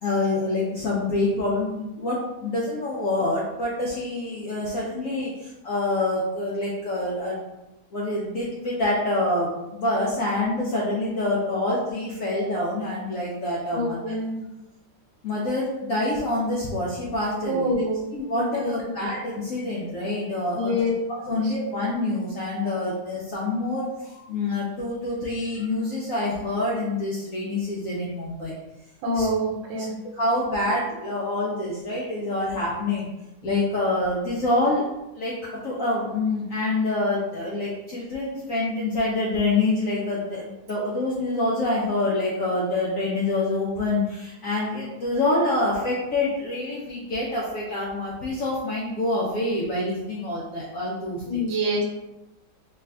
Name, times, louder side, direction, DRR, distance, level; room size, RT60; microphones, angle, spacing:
voice 1, 0.0-7.4 7.9-14.2 15.2-17.7 18.1-20.8 21.2-28.5 29.1-29.3 29.8-29.9 30.1-33.1 33.4-34.8 35.1-35.4 35.6-51.5, left 2 dB, 70° left, -5 dB, 0.8 m, -26 dB
voice 2, 13.7-14.4 17.5-18.0 18.3-18.7 20.5-20.9 21.3-21.4 29.0-29.9 51.3-51.8, equal, 80° right, -1 dB, 1.5 m, -26 dB
3.3 x 2.5 x 3.4 m, 0.97 s
omnidirectional pair, 2.1 m